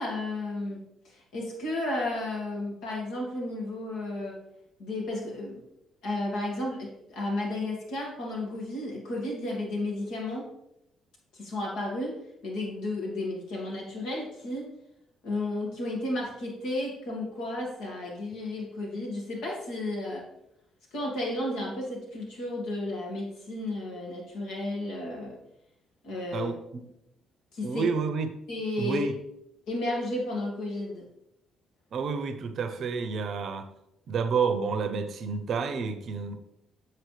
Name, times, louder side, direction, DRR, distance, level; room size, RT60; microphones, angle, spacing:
voice 1, 0.0-4.4 4.8-5.6 6.0-10.5 11.3-14.7 15.2-20.2 20.9-25.4 26.0-26.5 27.5-27.8 28.5-29.1 29.7-31.1, left 1 dB, 70° left, -2 dB, 1.9 m, -33 dB
voice 2, 26.3-26.9 27.6-28.3 28.8-29.2 31.9-33.7 34.1-36.4, right 5 dB, 60° right, 9 dB, 0.7 m, -29 dB
7.6 x 4.4 x 3.3 m, 0.83 s
hypercardioid pair, 50°, 0 cm